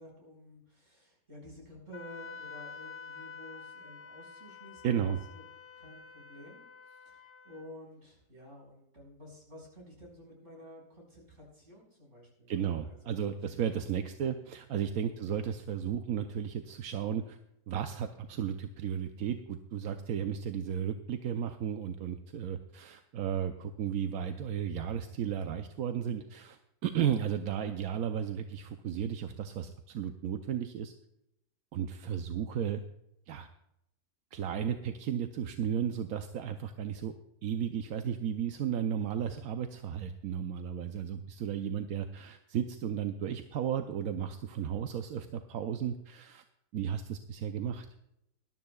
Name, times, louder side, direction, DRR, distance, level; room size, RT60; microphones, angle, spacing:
voice 1, 0.0-5.4 5.8-13.2 15.1-15.3, equal, 40° right, -2 dB, 5.7 m, -52 dB
Wind instrument woodwind instrument, 1.9-7.7, left 5 dB, 45° left, 0.8 m, -48 dB
voice 2, 4.8-5.2 12.5-17.4 17.7-30.9 31.7-32.8 33.3-33.5 34.3-37.1 37.4-46.4 46.7-47.9, right 8 dB, 65° right, 7 dB, 1.0 m, -34 dB
20.0 x 12.5 x 2.3 m, 0.83 s
omnidirectional pair, 1.8 m